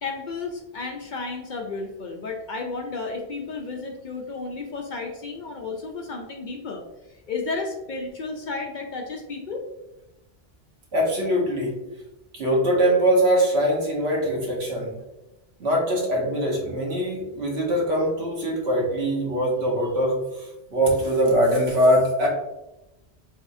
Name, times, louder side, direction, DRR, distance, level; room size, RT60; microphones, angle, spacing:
voice 1, 0.0-6.8 7.1-9.6, left 3 dB, 55° left, 2 dB, 0.6 m, -32 dB
voice 2, 10.9-11.8 12.3-15.0 15.6-22.3, equal, 75° right, -2 dB, 1.4 m, -22 dB
4.0 x 3.4 x 2.6 m, 0.98 s
omnidirectional pair, 1.1 m